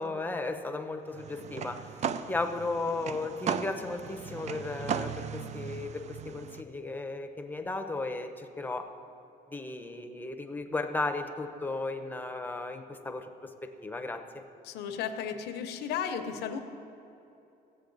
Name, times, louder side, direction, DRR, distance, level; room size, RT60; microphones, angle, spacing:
voice 1, 0.0-8.9 9.5-14.4, left 3 dB, 10° left, 6 dB, 0.8 m, -35 dB
sound 1, 1.1-6.6, right 7 dB, 45° right, 0.5 m, -37 dB
voice 2, 14.6-16.6, left 7 dB, 80° left, 7 dB, 0.9 m, -34 dB
16.0 x 8.1 x 3.9 m, 2.8 s
cardioid pair, 110°, 17 cm